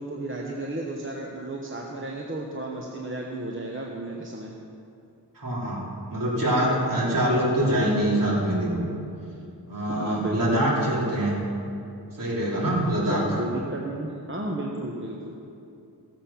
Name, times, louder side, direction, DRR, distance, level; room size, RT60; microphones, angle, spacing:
voice 1, 0.0-4.5 9.9-10.6 13.0-15.4, right 1 dB, 30° right, -1 dB, 1.1 m, -33 dB
voice 2, 5.3-5.8 6.1-8.7 9.6-11.3 12.2-13.2, right 1 dB, 55° right, -6 dB, 3.6 m, -24 dB
16.5 x 7.5 x 5.8 m, 2.6 s
wide cardioid pair, 85°, 40 cm